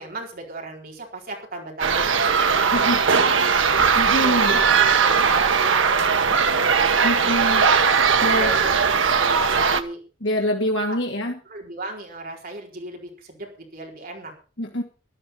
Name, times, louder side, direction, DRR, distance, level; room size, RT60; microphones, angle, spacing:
voice 1, 0.0-3.9 4.2-6.9 7.6-10.0 10.9-11.0 11.5-14.3, right 2 dB, 45° right, 0 dB, 4.4 m, -35 dB
sound 1, 1.8-9.8, right 6 dB, 80° right, 1.2 m, -19 dB
voice 2, 3.9-4.6 7.0-7.6 8.2-8.5 10.2-11.4 14.6-14.8, left 1 dB, 65° left, -1 dB, 2.3 m, -25 dB
12.5 x 12.0 x 5.7 m, 0.37 s
head